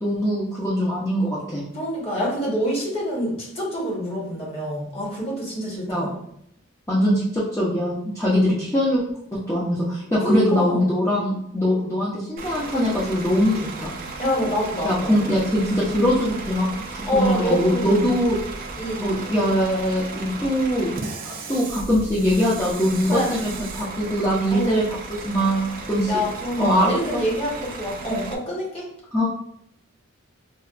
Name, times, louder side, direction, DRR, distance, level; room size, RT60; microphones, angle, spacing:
voice 1, 0.0-1.6 5.9-6.1 6.9-9.0 9.5-13.9 14.8-16.7 16.9-18.4 19.0-20.9 21.2-24.9 25.2-26.2 26.6-27.2 29.1-29.2, equal, 15° left, -9 dB, 0.6 m, -22 dB
voice 2, 1.7-6.1 10.2-10.8 14.2-15.3 17.1-18.1 18.8-19.1 23.1-23.4 24.5-24.8 26.1-28.9, equal, 30° left, -4 dB, 1.1 m, -26 dB
Bus / Idling, 12.4-28.3, right 3 dB, 45° right, 0.3 m, -35 dB
4.1 x 2.2 x 2.4 m, 0.72 s
head